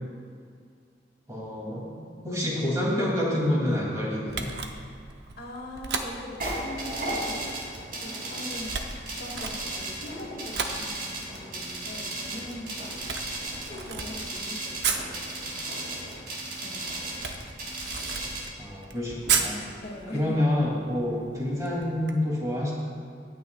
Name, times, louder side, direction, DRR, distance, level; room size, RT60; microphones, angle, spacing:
voice 1, 1.3-2.0 2.2-4.5 18.6-19.7 20.1-22.7, left 1 dB, 20° right, -5 dB, 2.7 m, -27 dB
Camera, 4.3-22.1, right 6 dB, 70° right, 0.9 m, -36 dB
voice 2, 5.4-7.5 8.0-8.8 9.1-13.0 13.4-15.6 16.6-16.9 19.8-20.4, left 1 dB, 60° left, -2 dB, 2.1 m, -41 dB
sound 1, 6.4-18.4, right 2 dB, 55° right, 2.9 m, -35 dB
23.0 x 9.4 x 2.4 m, 2.2 s
head